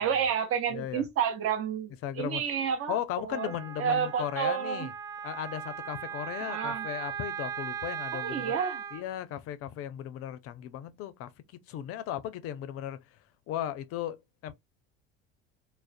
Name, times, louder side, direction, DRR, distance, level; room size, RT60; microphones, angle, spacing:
voice 1, 0.0-3.0 3.2-3.5 3.8-4.9 6.4-6.9 8.1-8.8, right 7 dB, 45° right, 0.9 m, -30 dB
voice 2, 0.7-1.0 2.0-2.4 2.9-4.9 5.2-8.6 8.9-11.3 11.7-13.0 13.5-14.5, left 11 dB, 50° left, 0.5 m, -36 dB
Wind instrument woodwind instrument, 3.3-9.0, right 8 dB, 15° right, 0.4 m, -38 dB
2.4 x 2.1 x 2.4 m
hypercardioid pair, 80°, 31 cm